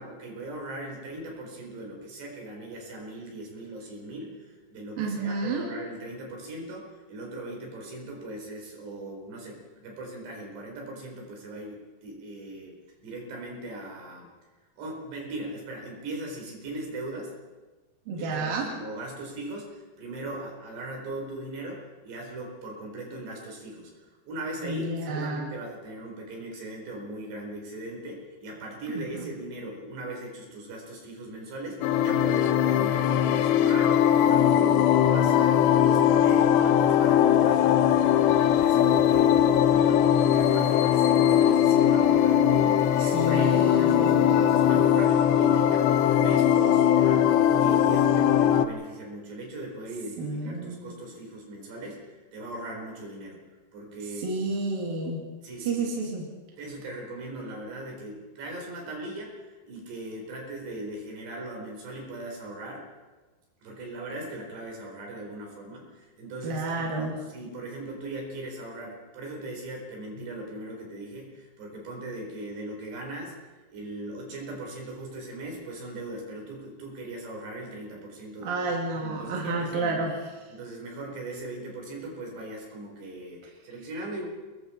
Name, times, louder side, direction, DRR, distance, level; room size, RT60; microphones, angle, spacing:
voice 1, 0.0-14.3 14.8-17.4 18.1-53.4 53.7-54.4 55.4-55.9 56.6-62.8 63.6-73.3 73.7-80.1 80.5-84.3, right 1 dB, 80° right, 0 dB, 6.7 m, -39 dB
voice 2, 5.0-5.7 18.1-18.7 24.6-25.4 28.9-29.3 43.0-44.7 50.2-51.0 54.2-55.2 55.6-56.3 66.4-67.1 78.4-80.1, right 3 dB, 60° right, -2 dB, 4.1 m, -30 dB
sound 1, 31.8-48.7, left 10 dB, 90° left, 3.0 m, -20 dB
28.5 x 21.5 x 4.5 m, 1.3 s
omnidirectional pair, 4.8 m